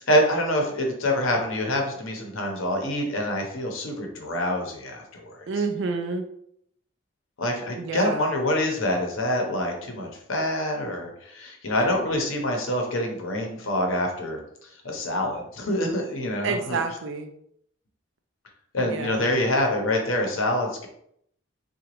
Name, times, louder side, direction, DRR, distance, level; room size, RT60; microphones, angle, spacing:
voice 1, 0.1-5.3 7.4-14.4 14.8-16.8 18.7-20.9, left 1 dB, 75° left, 2 dB, 0.8 m, -26 dB
voice 2, 5.5-6.3 7.8-8.3 16.4-17.3 18.8-19.4, right 4 dB, 60° right, 6 dB, 0.4 m, -29 dB
3.8 x 2.3 x 3.0 m, 0.71 s
head